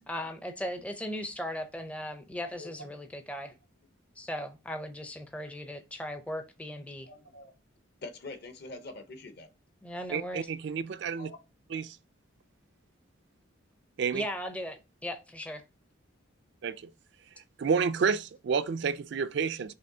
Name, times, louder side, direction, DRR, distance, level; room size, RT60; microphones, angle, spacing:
voice 1, 0.0-3.5 4.2-7.1 9.8-10.5 14.1-15.6, left 1 dB, 5° left, 0.5 m, -38 dB
voice 2, 2.3-2.9 6.8-7.5 8.0-9.5 10.6-10.7 11.2-11.4 11.7-11.9, left 2 dB, 50° left, 0.8 m, -46 dB
voice 3, 10.1-11.3 11.7-12.0 14.0-14.2 16.6-16.9 17.6-19.7, right 6 dB, 55° right, 0.3 m, -30 dB
5.5 x 3.0 x 2.7 m
head